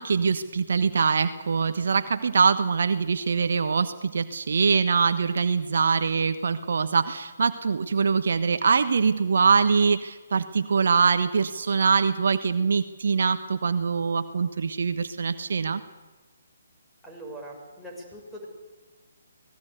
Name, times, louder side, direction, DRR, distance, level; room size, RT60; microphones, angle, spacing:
voice 1, 0.0-15.8, right 5 dB, 60° right, 10 dB, 1.3 m, -23 dB
voice 2, 17.0-18.5, right 1 dB, ahead, -2 dB, 6.7 m, -41 dB
25.5 x 19.0 x 8.3 m, 1.2 s
figure-of-eight pair, 140°, 0 cm